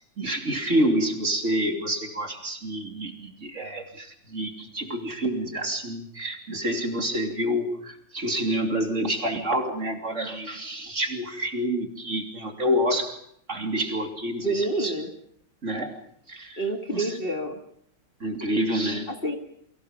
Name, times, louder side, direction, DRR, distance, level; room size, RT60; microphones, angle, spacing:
voice 1, 0.2-13.2 13.5-14.9 15.6-16.0 16.3-16.6 16.9-17.2 18.2-19.1, equal, 40° right, 3 dB, 3.3 m, -28 dB
voice 2, 14.4-15.1 16.6-17.6 19.1-19.4, right 2 dB, 30° left, 3 dB, 1.9 m, -28 dB
29.5 x 24.0 x 5.2 m, 0.69 s
omnidirectional pair, 2.0 m